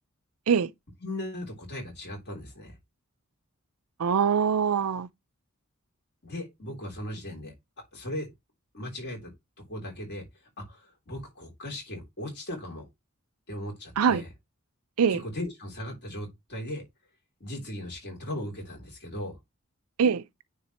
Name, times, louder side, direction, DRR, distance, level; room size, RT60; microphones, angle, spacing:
voice 1, 1.0-2.7 6.2-7.5 7.9-8.3 8.7-9.3 9.7-10.2 10.6-12.8 13.5-14.3 15.1-16.8 17.4-19.4, left 1 dB, 50° left, 3.2 m, -37 dB
voice 2, 4.0-5.1 14.0-14.2 15.0-15.2 20.0-20.2, right 7 dB, 85° right, 0.5 m, -23 dB
9.6 x 3.6 x 2.9 m
head